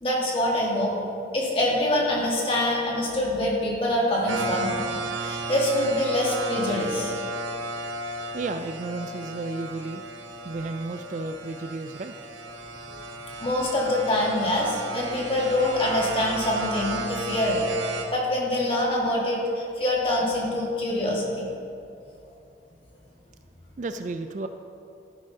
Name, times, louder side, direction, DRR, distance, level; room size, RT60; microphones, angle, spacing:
voice 1, 0.0-0.9 1.3-7.1 12.9-13.0 13.4-21.5, left 1 dB, 30° left, -3 dB, 1.8 m, -25 dB
sound 1, 4.3-18.0, right 2 dB, 90° right, 1.1 m, -34 dB
voice 2, 8.3-10.0 10.4-12.1 23.8-24.5, right 3 dB, 40° right, 8 dB, 0.3 m, -33 dB
12.5 x 10.5 x 2.8 m, 2.6 s
head